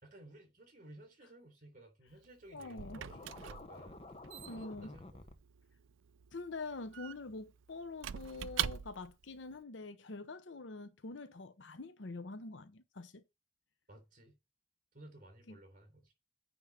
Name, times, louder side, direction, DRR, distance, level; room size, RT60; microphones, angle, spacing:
voice 1, 0.0-5.4 13.9-14.4 14.9-16.1, right 1 dB, 45° right, 3.6 m, -56 dB
Squeak / Wood, 2.1-9.2, right 11 dB, 90° right, 0.4 m, -43 dB
voice 2, 2.5-3.0 4.5-4.9 6.3-13.2 15.5-15.6, left 3 dB, 75° left, 0.7 m, -45 dB
Scratching (performance technique), 2.8-5.3, left 2 dB, 30° left, 0.9 m, -51 dB
9.3 x 3.7 x 7.1 m
head